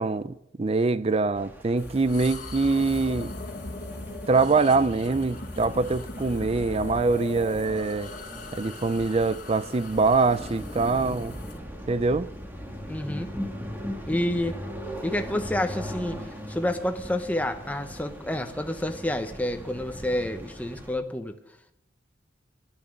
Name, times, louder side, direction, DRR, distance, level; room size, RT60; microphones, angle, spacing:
voice 1, 0.0-3.3 4.3-8.1 8.5-11.4 11.9-12.3, right 3 dB, 35° right, 0.5 m, -24 dB
sound 1, 1.3-20.9, equal, 10° right, 1.7 m, -39 dB
sound 2, 1.8-11.6, left 2 dB, 45° left, 1.7 m, -39 dB
voice 2, 12.9-13.3 14.1-14.6 15.0-21.4, left 1 dB, 10° left, 1.0 m, -29 dB
14.0 x 11.5 x 6.7 m
head